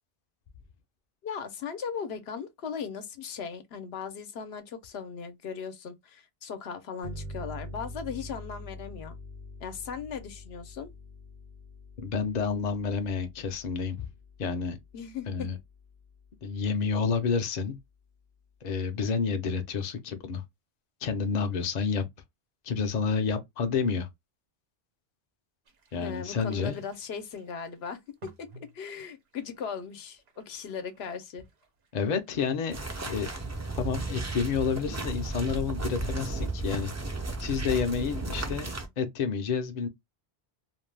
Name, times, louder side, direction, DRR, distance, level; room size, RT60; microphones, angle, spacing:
voice 1, 1.2-9.2 9.6-10.9 14.9-15.3 26.0-31.4, left 6 dB, 80° left, 0.9 m, -38 dB
sound 1, 7.0-16.3, left 1 dB, 60° right, 0.9 m, -45 dB
voice 2, 12.0-14.1 14.4-14.8 15.3-15.6 16.4-17.8 18.6-20.4 21.0-22.0 22.6-24.1 25.9-26.8 31.9-33.3 33.7-36.9 37.4-39.9, left 5 dB, 50° left, 0.6 m, -29 dB
sound 2, 25.7-35.7, right 4 dB, 85° right, 1.0 m, -55 dB
sound 3, 32.7-38.9, right 2 dB, 25° right, 0.4 m, -34 dB
2.6 x 2.2 x 3.2 m
omnidirectional pair, 1.0 m